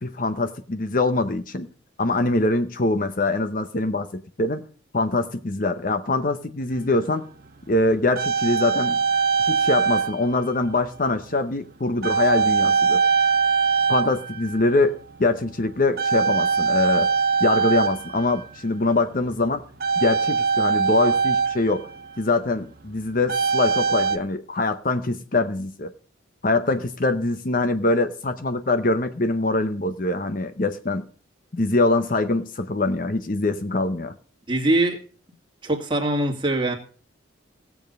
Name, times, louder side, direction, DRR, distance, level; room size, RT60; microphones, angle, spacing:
voice 1, 0.0-1.7 2.0-4.6 4.9-7.2 7.7-9.0 9.4-13.0 13.9-17.1 17.4-19.6 20.0-21.9 22.2-25.9 26.4-31.0 31.5-34.1, left 2 dB, 45° left, 0.8 m, -23 dB
sound 1, 6.7-6.8 7.7-10.3 10.6-10.9 12.0-14.8 15.1-15.5 16.0-18.6 19.8-22.2 23.3-24.2, right 5 dB, 50° right, 1.0 m, -22 dB
voice 2, 34.5-35.0 35.6-36.7, right 2 dB, 25° right, 2.1 m, -22 dB
17.0 x 7.2 x 5.3 m
head